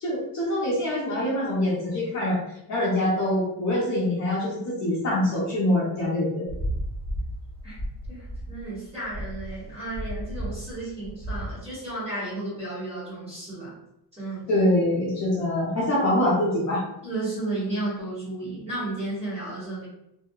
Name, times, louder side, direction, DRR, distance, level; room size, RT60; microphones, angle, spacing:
voice 1, 0.0-2.4 2.7-6.4 14.5-16.8, left 1 dB, 40° left, -5 dB, 0.7 m, -24 dB
sound 1, 6.5-11.6, equal, 5° left, 0.3 m, -33 dB
voice 2, 8.5-13.7 14.2-14.4 17.0-19.9, right 2 dB, 15° right, -9 dB, 0.8 m, -33 dB
2.7 x 2.1 x 2.2 m, 0.83 s
cardioid pair, 170°, 44 cm